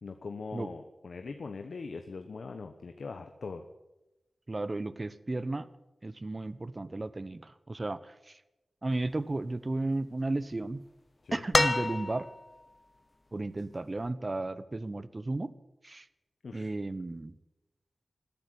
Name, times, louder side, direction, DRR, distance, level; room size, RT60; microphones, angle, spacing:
voice 1, 0.0-3.7 11.2-11.4 16.4-16.7, left 4 dB, 75° left, 7 dB, 1.1 m, -41 dB
voice 2, 4.5-5.7 6.0-8.4 8.8-10.8 11.3-12.3 13.3-15.5 15.8-16.1 16.5-17.3, right 2 dB, 35° right, 15 dB, 0.9 m, -34 dB
sound 1, 11.5-12.5 14.1-14.2, left 2 dB, 30° left, 0.9 m, -27 dB
14.0 x 10.5 x 9.6 m, 1.0 s
wide cardioid pair, 60°, 0 cm